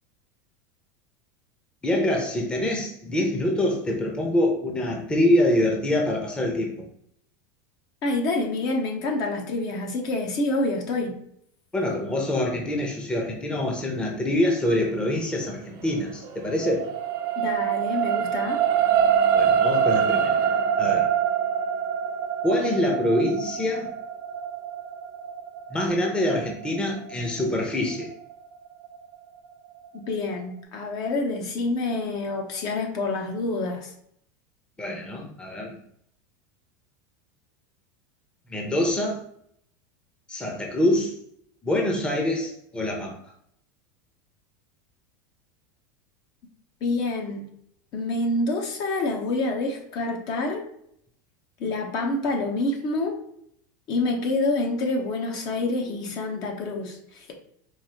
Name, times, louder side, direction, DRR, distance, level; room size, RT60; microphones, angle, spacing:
voice 1, 1.8-6.7 11.7-16.8 19.3-20.4 20.8-21.1 22.4-23.9 25.7-28.1 34.8-35.7 38.5-39.2 40.3-41.1 41.6-43.2, left 1 dB, 10° left, 0 dB, 0.7 m, -25 dB
voice 2, 8.0-11.1 17.4-18.6 29.9-33.9 46.8-47.4 47.9-50.6 51.6-53.2 53.9-57.3, left 2 dB, 45° left, 2 dB, 0.8 m, -27 dB
sound 1, 15.8-28.3 28.8-29.0, right 8 dB, 50° right, 0.6 m, -25 dB
4.7 x 2.6 x 2.8 m, 0.69 s
supercardioid pair, 135°, 10 cm